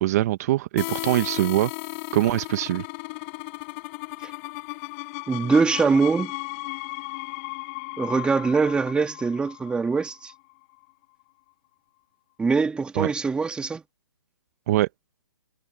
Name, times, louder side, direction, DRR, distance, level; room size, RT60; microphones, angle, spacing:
voice 1, 0.0-1.7 2.1-2.8 13.0-13.1 14.7-14.9, right 15 dB, 40° right, 1.3 m, -23 dB
sound 1, 0.8-10.3, left 29 dB, 30° left, 7.2 m, -35 dB
voice 2, 5.3-6.3 8.0-10.3 12.4-13.8, right 4 dB, 5° right, 2.3 m, -23 dB
hypercardioid pair, 145°, 13 cm